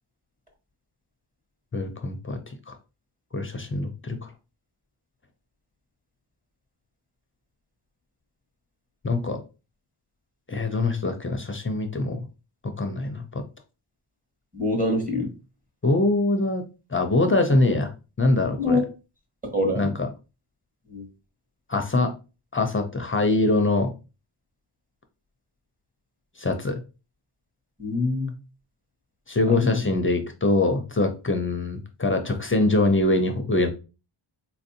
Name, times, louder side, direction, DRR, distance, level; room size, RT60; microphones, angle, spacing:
voice 1, 1.7-2.4 2.7-2.8 3.3-4.3 9.0-9.4 10.5-12.2 12.6-13.4 15.8-16.6 16.9-17.9 18.2-18.8 19.7-20.1 21.7-22.1 22.5-23.9 26.4-26.8 29.3-33.7, left 2 dB, 25° left, 6 dB, 0.5 m, -23 dB
voice 2, 14.5-15.3 18.6-18.8 19.5-19.9 20.9-21.1 27.8-28.3 29.5-29.9, left 2 dB, 15° right, 0 dB, 1.1 m, -25 dB
4.0 x 2.6 x 2.7 m, 0.30 s
wide cardioid pair, 105°, 50 cm